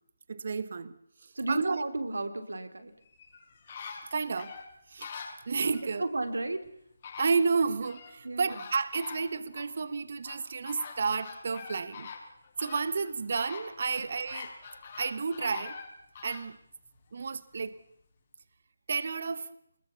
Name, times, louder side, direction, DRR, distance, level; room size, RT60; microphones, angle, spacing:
voice 1, 0.3-1.0 1.2-1.8 4.1-4.5 4.9-5.1 5.5-6.0 7.2-12.1 12.6-14.5 15.0-15.8 16.2-16.6 17.1-17.8 18.9-19.5, right 5 dB, 50° right, 1.4 m, -31 dB
voice 2, 1.3-2.9 6.0-6.6 8.2-8.6, right 2 dB, 75° right, 3.0 m, -32 dB
sound 1, 3.0-5.9 6.6-6.7 7.0-8.2 8.5-9.7 10.2-16.5 17.0-17.1, left 5 dB, 40° left, 5.5 m, -44 dB
25.5 x 21.5 x 7.0 m
figure-of-eight pair, 155°, 0 cm